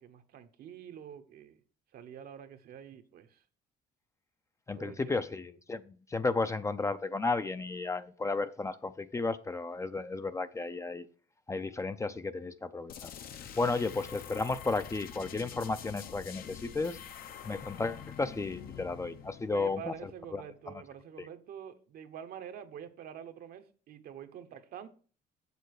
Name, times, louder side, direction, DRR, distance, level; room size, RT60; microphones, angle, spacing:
voice 1, 0.0-1.6 1.9-3.4 4.7-5.2 13.5-13.6 19.5-24.9, right 9 dB, 65° right, 1.0 m, -46 dB
voice 2, 4.7-11.0 11.5-13.1 13.6-17.0 17.4-19.9 20.3-20.4, left 3 dB, 15° left, 0.5 m, -33 dB
sound 1, 12.9-20.5, left 8 dB, 60° left, 0.8 m, -46 dB
7.4 x 6.8 x 4.7 m
cardioid pair, 110°, 17 cm